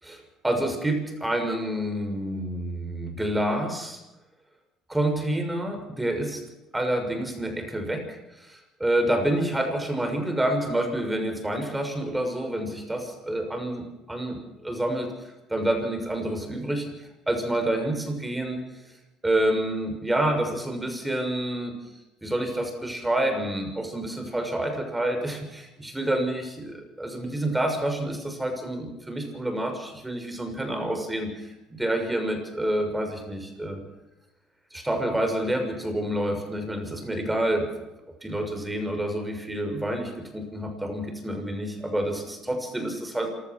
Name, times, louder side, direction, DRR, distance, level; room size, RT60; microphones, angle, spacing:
voice 1, 0.0-4.0 4.9-6.4 6.7-15.1 15.5-16.9 17.3-18.6 19.2-21.7 22.2-31.5 31.8-33.8 34.7-37.7 38.2-43.3, right 1 dB, 10° right, 5 dB, 6.3 m, -28 dB
27.0 x 16.5 x 6.1 m, 1.0 s
supercardioid pair, 90°, 0 cm